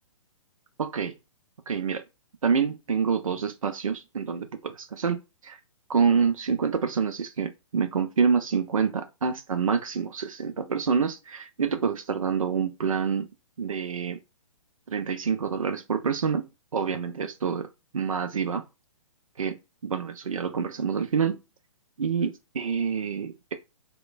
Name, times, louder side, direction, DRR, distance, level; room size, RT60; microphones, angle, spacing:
voice 1, 0.8-1.2 1.7-2.0 2.4-5.6 5.9-13.3 13.6-14.2 14.9-18.6 19.4-21.4 22.0-23.5, right 6 dB, 75° right, 0.5 m, -27 dB
3.0 x 2.1 x 2.4 m
figure-of-eight pair, 125°, 17 cm